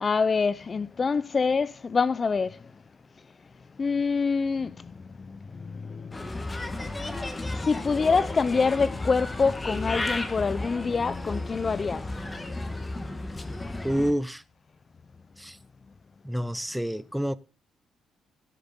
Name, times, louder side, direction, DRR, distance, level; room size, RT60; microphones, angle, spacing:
voice 1, 0.0-2.6 3.8-6.2 7.5-12.1, left 5 dB, 35° left, 0.5 m, -26 dB
Bird, 6.1-14.1, left 2 dB, 20° left, 1.3 m, -33 dB
voice 2, 13.8-14.4 15.4-15.6 16.2-17.4, equal, 5° right, 0.7 m, -28 dB
16.5 x 6.9 x 4.1 m
cardioid pair, 90°, 0 cm